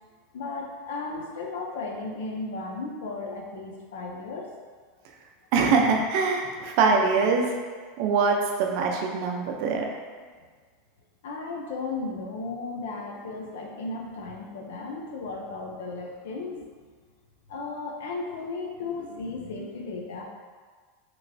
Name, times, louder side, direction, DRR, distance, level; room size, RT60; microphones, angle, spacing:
voice 1, 0.3-4.5 6.4-6.5 11.2-16.7 17.5-20.2, left 3 dB, 85° left, 1 dB, 0.5 m, -35 dB
voice 2, 5.5-7.6 8.0-9.9, right 4 dB, 60° right, 1 dB, 0.5 m, -23 dB
3.0 x 3.0 x 2.6 m, 1.5 s
supercardioid pair, 130°, 0 cm